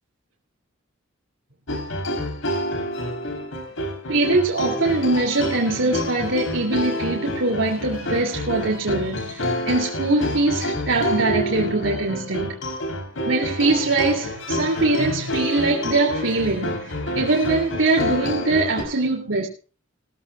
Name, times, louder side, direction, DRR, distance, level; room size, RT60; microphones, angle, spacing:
sound 1, 1.7-18.8, left 1 dB, 75° left, 3.7 m, -28 dB
voice 1, 4.1-12.6 13.2-19.5, right 2 dB, 70° right, 2.9 m, -22 dB
20.5 x 14.5 x 2.3 m
head